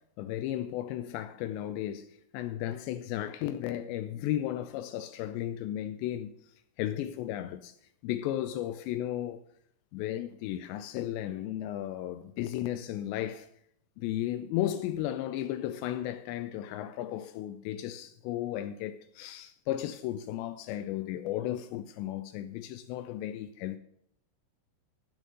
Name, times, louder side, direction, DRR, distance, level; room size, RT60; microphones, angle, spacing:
voice 1, 0.0-6.3 6.8-7.7 8.0-9.4 9.9-13.5 14.0-23.8, left 12 dB, 90° left, 2.5 m, -34 dB
12.5 x 6.3 x 6.4 m
omnidirectional pair, 5.6 m